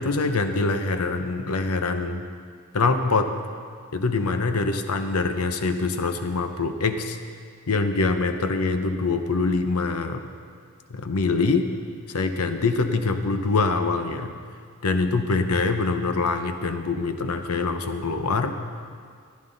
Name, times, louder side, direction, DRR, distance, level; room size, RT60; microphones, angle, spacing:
voice 1, 0.0-2.3 2.7-3.3 3.9-7.2 7.7-10.2 10.9-11.7 12.1-14.3 14.8-18.6, left 3 dB, 85° left, 7 dB, 0.8 m, -24 dB
15.0 x 11.0 x 4.0 m, 2.1 s
head